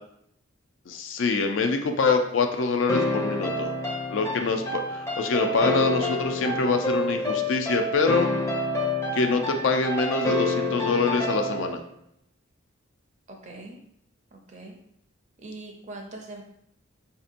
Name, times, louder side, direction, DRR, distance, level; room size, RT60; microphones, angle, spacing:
voice 1, 0.9-3.8 4.1-8.3 9.1-11.8, left 4 dB, 70° left, 5 dB, 0.4 m, -25 dB
sound 1, 2.9-11.8, left 1 dB, 15° left, 0.5 m, -28 dB
voice 2, 13.3-13.8 14.3-14.8 15.4-16.4, right 2 dB, 35° right, 2 dB, 0.5 m, -42 dB
4.3 x 2.7 x 2.5 m, 0.72 s
head